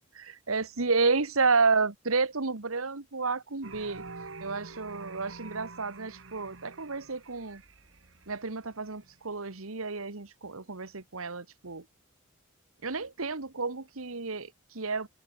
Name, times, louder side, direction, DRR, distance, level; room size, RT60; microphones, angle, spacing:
voice 1, 0.0-4.0 4.4-7.6 8.3-11.8 12.8-15.1, right 4 dB, 85° right, 1.6 m, -30 dB
sound 1, 3.6-9.2, right 3 dB, 65° right, 1.4 m, -47 dB
open air
head